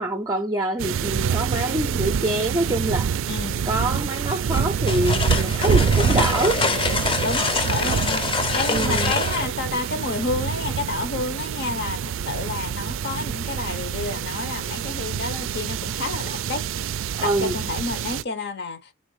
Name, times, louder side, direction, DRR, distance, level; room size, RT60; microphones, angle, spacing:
voice 1, 0.0-3.1 3.7-6.6 8.7-9.1 17.2-17.6, right 1 dB, 20° right, 0.5 m, -25 dB
sound 1, 0.8-18.2, right 7 dB, 75° right, 0.3 m, -26 dB
voice 2, 3.3-3.6 7.2-16.7 17.2-18.9, left 3 dB, 55° left, 0.9 m, -30 dB
sound 2, 4.5-9.5, left 4 dB, 25° left, 0.7 m, -25 dB
4.3 x 3.5 x 3.1 m
head